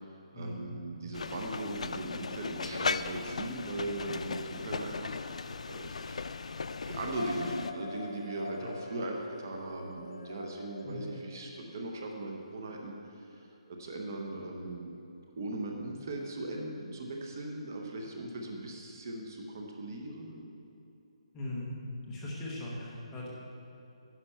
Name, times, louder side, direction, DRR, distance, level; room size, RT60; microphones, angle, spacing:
voice 1, 0.3-6.2 6.7-15.0 15.4-20.5, right 2 dB, 30° right, 1 dB, 0.8 m, -39 dB
sound 1, 1.1-7.7, left 4 dB, 90° left, 0.3 m, -37 dB
sound 2, 7.1-11.9, left 3 dB, 60° left, 0.8 m, -43 dB
voice 2, 21.3-21.7 22.1-23.3, left 1 dB, 10° left, -6 dB, 0.8 m, -39 dB
10.0 x 5.8 x 5.5 m, 3.0 s
hypercardioid pair, 180°, 3 cm